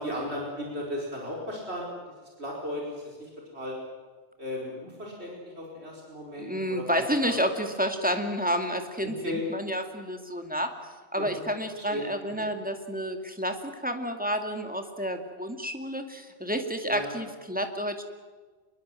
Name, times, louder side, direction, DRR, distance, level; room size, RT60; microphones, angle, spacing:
voice 1, 0.0-1.9 2.4-3.8 4.4-7.4 9.2-9.4 11.2-11.4 11.8-12.1 12.4-12.5 16.9-17.1, left 1 dB, 70° right, -2 dB, 5.1 m, -36 dB
voice 2, 6.4-10.7 11.1-18.0, equal, 5° right, 5 dB, 2.4 m, -30 dB
26.0 x 21.5 x 7.8 m, 1.4 s
omnidirectional pair, 1.2 m